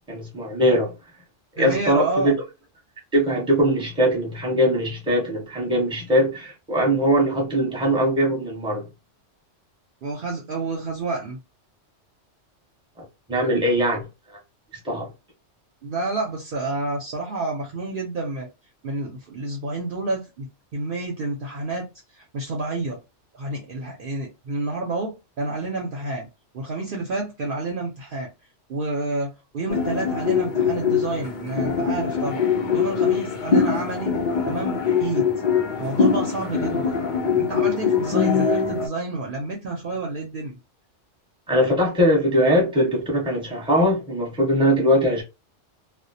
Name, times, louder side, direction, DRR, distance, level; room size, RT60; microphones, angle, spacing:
voice 1, 0.1-0.9 1.6-2.4 3.1-8.8 13.0-14.1 14.8-15.1 41.5-45.2, equal, 5° right, 0.8 m, -21 dB
voice 2, 1.6-2.3 10.0-11.4 15.8-18.5 18.8-20.5 20.7-21.9 22.1-23.0 23.3-26.3 26.5-28.3 28.7-34.1 34.5-35.2 35.8-37.0 37.4-40.6, right 2 dB, 55° right, 0.7 m, -29 dB
sound 1, 29.7-38.9, left 6 dB, 60° left, 0.5 m, -23 dB
2.3 x 2.1 x 2.6 m
omnidirectional pair, 1.2 m